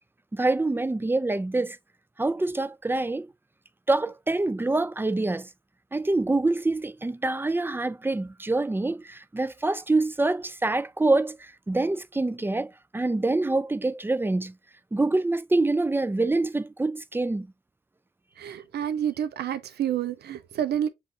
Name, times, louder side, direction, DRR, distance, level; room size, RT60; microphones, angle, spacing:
voice 1, 0.3-1.8 2.2-3.3 3.9-5.5 5.9-14.5 14.9-17.5, right 2 dB, 15° right, 0.3 m, -26 dB
voice 2, 18.4-20.9, right 10 dB, 85° right, 0.5 m, -29 dB
6.7 x 2.5 x 2.6 m
supercardioid pair, 45°, 17 cm